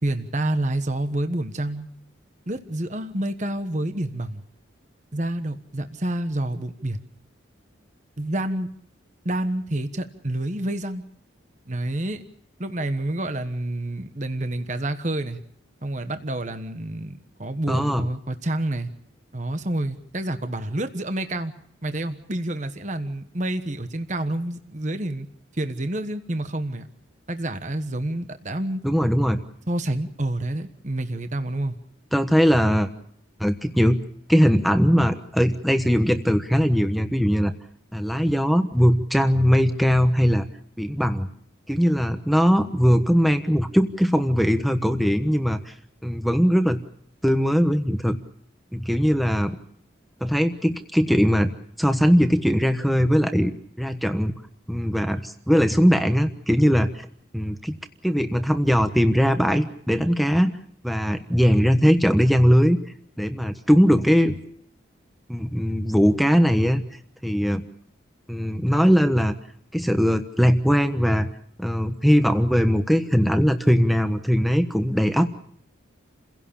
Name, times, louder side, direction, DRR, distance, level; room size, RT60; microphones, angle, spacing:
voice 1, 0.0-1.9 2.5-4.4 5.1-7.0 8.2-8.7 9.2-11.0 11.7-12.2 12.6-15.4 15.8-18.9 19.3-21.5 21.8-25.3 25.5-26.9 27.3-28.8 29.7-31.8, right 1 dB, 35° right, 9 dB, 1.3 m, -28 dB
voice 2, 17.7-18.1 28.8-29.4 32.1-32.9 33.4-34.0 34.3-37.5 37.9-40.5 40.8-41.3 41.7-45.7 46.0-46.8 47.2-48.2 48.7-49.6 50.2-51.5 51.8-53.5 53.8-54.3 54.7-57.1 57.3-57.8 58.0-60.5 60.8-62.8 63.2-64.4 65.3-66.8 67.2-67.6 68.3-69.3 69.7-71.3 71.6-75.3, equal, ahead, 8 dB, 1.1 m, -20 dB
29.5 x 17.0 x 7.1 m, 0.66 s
head